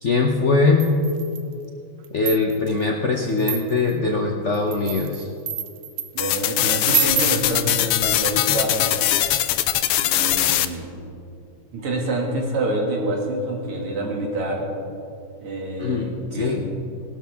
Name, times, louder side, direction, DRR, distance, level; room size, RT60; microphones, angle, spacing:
voice 1, 0.0-1.0 2.1-5.3 15.8-16.6, left 3 dB, 55° left, 0 dB, 0.8 m, -21 dB
sound 1, 0.8-1.5 2.0-2.7 3.4-3.9 4.5-6.3 6.8-7.5, right 10 dB, 65° right, 1.2 m, -28 dB
voice 2, 6.1-9.2 10.0-11.0 11.7-14.7 15.4-16.6, right 1 dB, 85° right, -1 dB, 3.1 m, -27 dB
sound 2, 6.2-10.7, left 12 dB, 80° left, 1.5 m, -21 dB
19.0 x 12.5 x 3.6 m, 2.5 s
omnidirectional pair, 2.4 m